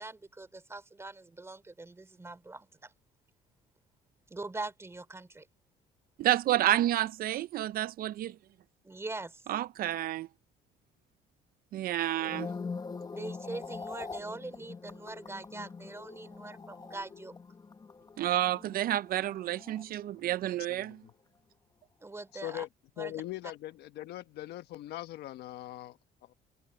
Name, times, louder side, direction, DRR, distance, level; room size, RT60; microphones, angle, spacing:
voice 1, 0.0-2.9 4.3-5.4 8.8-9.4 13.1-17.3 22.0-22.6 23.0-23.2, right 2 dB, 15° right, 2.9 m, -42 dB
voice 2, 6.2-8.3 9.5-10.3 11.7-12.5 18.2-21.0, right 13 dB, 60° right, 0.5 m, -29 dB
sound 1, 12.1-20.5 20.7-21.1, left 4 dB, 20° left, 1.0 m, -44 dB
voice 3, 20.7-21.1 22.4-22.7 23.0-26.3, left 14 dB, 75° left, 1.2 m, -41 dB
cardioid pair, 110°, 17 cm